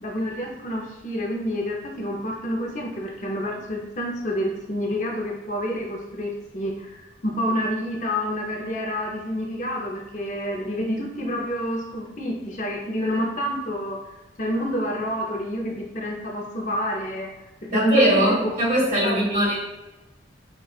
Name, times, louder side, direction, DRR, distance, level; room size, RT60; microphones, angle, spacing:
voice 1, 0.0-14.0 14.4-17.3 17.7-18.5 19.0-19.4, equal, 40° left, -1 dB, 0.6 m, -28 dB
voice 2, 17.7-19.5, right 1 dB, 40° right, -5 dB, 1.5 m, -20 dB
5.7 x 2.3 x 2.3 m, 1.1 s
head